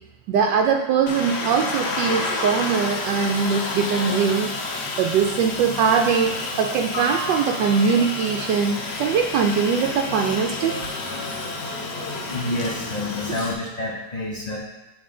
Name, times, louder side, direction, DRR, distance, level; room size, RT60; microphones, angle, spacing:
voice 1, 0.3-4.5 5.0-10.8, right 6 dB, 80° right, 2 dB, 1.2 m, -21 dB
Aircraft, 1.1-13.5, left 2 dB, 70° left, 1.4 m, -29 dB
voice 2, 12.3-14.6, left 1 dB, 45° left, -3 dB, 0.5 m, -28 dB
8.7 x 3.4 x 3.7 m, 1.1 s
omnidirectional pair, 1.9 m